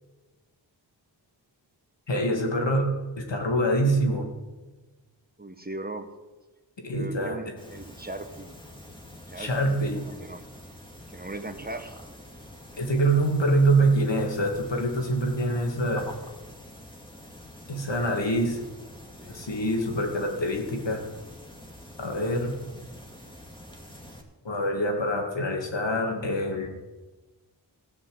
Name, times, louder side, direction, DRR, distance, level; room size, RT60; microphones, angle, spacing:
voice 1, 2.1-2.9 3.2-4.3 6.8-7.4 9.4-10.0 12.8-16.1 17.7-18.6 19.3-21.0 22.0-22.5 24.4-26.7, right 1 dB, 70° left, 1 dB, 2.5 m, -25 dB
voice 2, 5.4-6.1 6.9-8.5 9.3-9.8 10.0-10.5 11.1-12.0 19.2-19.5, right 2 dB, 20° right, 7 dB, 1.4 m, -38 dB
sound 1, 7.6-24.2, left 1 dB, 10° left, 2.4 m, -46 dB
16.0 x 5.7 x 8.0 m, 1.2 s
cardioid pair, 45°, 46 cm